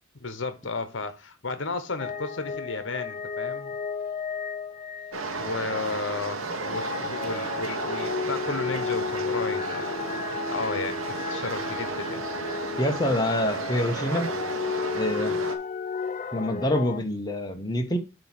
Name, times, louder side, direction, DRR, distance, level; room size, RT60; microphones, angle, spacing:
voice 1, 0.2-3.8 5.4-9.9 10.5-12.2, left 3 dB, 65° left, 1.0 m, -33 dB
sound 1, 2.0-5.7 6.4-17.0, left 5 dB, 35° left, 0.4 m, -33 dB
sound 2, 5.1-15.6, right 3 dB, 90° right, 1.1 m, -33 dB
voice 2, 12.8-14.3 14.9-15.4 16.3-18.0, left 1 dB, 20° left, 0.9 m, -26 dB
7.6 x 2.9 x 5.9 m
head